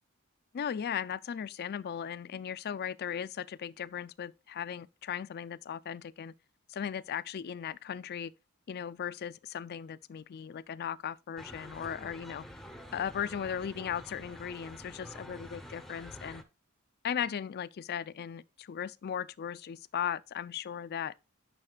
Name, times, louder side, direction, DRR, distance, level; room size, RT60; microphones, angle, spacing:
voice 1, 0.5-6.3 6.7-8.3 8.7-12.4 12.9-16.4 17.0-21.1, left 8 dB, 45° left, 0.4 m, -37 dB
sound 1, 11.4-16.4, equal, ahead, 0.7 m, -48 dB
9.7 x 5.8 x 2.3 m
head